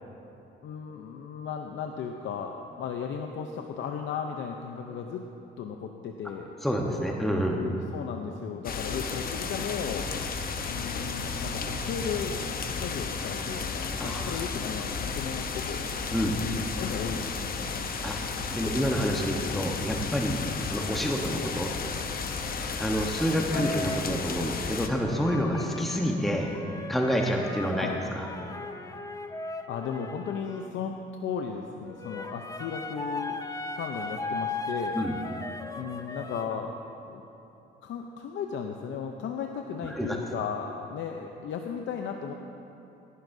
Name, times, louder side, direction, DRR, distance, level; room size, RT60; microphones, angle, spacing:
voice 1, 0.6-5.3 5.6-6.5 7.4-10.1 10.7-15.9 16.4-17.9 23.5-23.7 27.8-28.0 29.7-33.4 33.8-35.0 35.8-36.7 37.1-37.2 37.8-42.3, left 6 dB, 70° left, 3 dB, 0.7 m, -35 dB
voice 2, 6.6-7.6 14.0-14.4 16.1-16.4 18.0-18.1 18.5-21.7 22.8-26.5 26.9-28.3 34.9-35.2 39.8-40.2, equal, ahead, 0 dB, 1.0 m, -28 dB
sound 1, 8.6-24.9, left 5 dB, 50° left, 0.8 m, -33 dB
sound 2, 23.5-24.2 25.0-30.7 31.9-36.6, left 2 dB, 15° left, 0.6 m, -37 dB
17.0 x 11.0 x 2.7 m, 3.0 s
cardioid pair, 90°, 20 cm